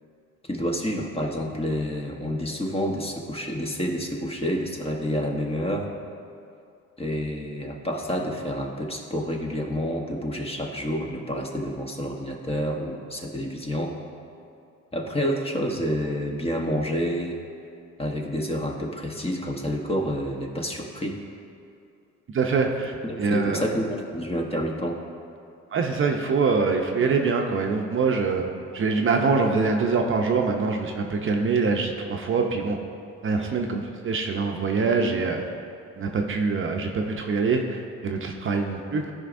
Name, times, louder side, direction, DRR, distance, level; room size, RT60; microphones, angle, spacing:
voice 1, 0.5-5.9 7.0-13.9 14.9-17.4 18.0-21.2 23.0-25.0, equal, 20° left, 0 dB, 1.0 m, -28 dB
voice 2, 22.3-22.9 23.2-23.6 25.7-28.4 28.7-32.8 33.2-35.4 36.0-39.1, right 4 dB, 45° right, 3 dB, 0.6 m, -24 dB
13.0 x 5.1 x 2.5 m, 2.5 s
cardioid pair, 90°, 30 cm